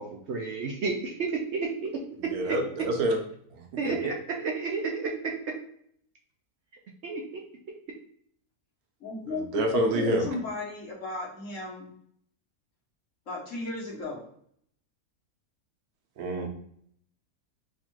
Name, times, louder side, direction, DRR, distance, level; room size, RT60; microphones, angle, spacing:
voice 1, 0.0-1.9 2.4-2.5 3.8-5.1 7.0-7.4, right 4 dB, 65° right, 0 dB, 0.7 m, -31 dB
voice 2, 2.3-3.2 3.5-3.9 9.3-10.3 16.2-16.5, right 1 dB, 80° right, 2 dB, 1.3 m, -27 dB
voice 3, 9.0-11.9 13.3-14.2, left 3 dB, 60° left, -2 dB, 1.3 m, -35 dB
3.5 x 2.4 x 4.4 m, 0.66 s
omnidirectional pair, 1.5 m